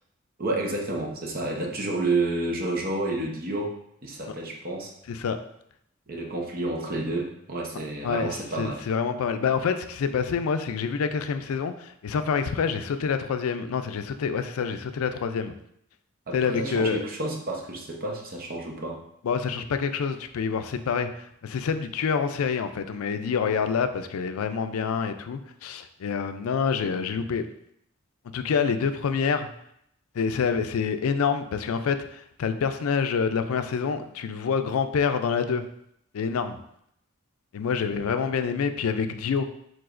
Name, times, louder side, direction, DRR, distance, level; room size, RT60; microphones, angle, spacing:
voice 1, 0.4-3.7 4.0-4.9 6.1-8.8 16.3-19.0, right 2 dB, 45° right, 1 dB, 0.8 m, -30 dB
voice 2, 7.7-15.5 16.3-17.0 19.2-27.5 28.3-29.5 30.1-35.6 36.1-36.6 37.5-39.4, left 6 dB, 85° left, 9 dB, 0.4 m, -27 dB
4.8 x 3.9 x 2.5 m, 0.74 s
head